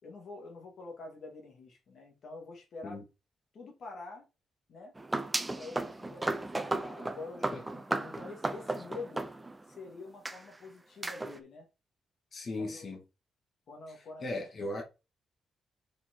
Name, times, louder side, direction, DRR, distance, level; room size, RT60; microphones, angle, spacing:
voice 1, 0.0-3.0 3.5-4.3 4.7-4.9 5.6-9.2 9.7-11.7 12.6-12.9 13.7-14.4, left 3 dB, 55° left, 2.0 m, -46 dB
sound 1, 5.0-9.8 10.3-10.4 11.0-11.4, right 2 dB, 15° right, 0.7 m, -35 dB
voice 2, 12.3-13.0 14.2-14.8, left 2 dB, 40° left, 1.9 m, -37 dB
5.3 x 4.5 x 4.5 m
cardioid pair, 140°, 0 cm